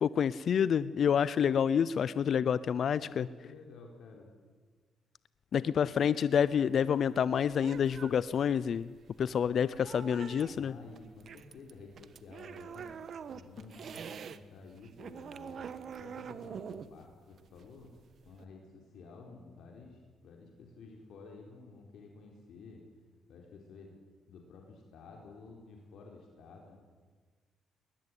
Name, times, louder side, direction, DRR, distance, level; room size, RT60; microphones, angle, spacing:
voice 1, 0.0-3.3 5.5-8.9 9.2-10.7, left 8 dB, 55° left, 17 dB, 0.6 m, -28 dB
voice 2, 3.0-4.3 5.8-5.9 10.5-13.0 13.3-17.9 18.3-22.9 23.3-23.9 24.3-26.8, left 4 dB, 70° left, 1 dB, 4.3 m, -52 dB
sound 1, 6.3-14.4 14.7-18.4, right 7 dB, 55° right, 1.4 m, -46 dB
21.0 x 20.5 x 9.9 m, 1.5 s
cardioid pair, 90°, 0 cm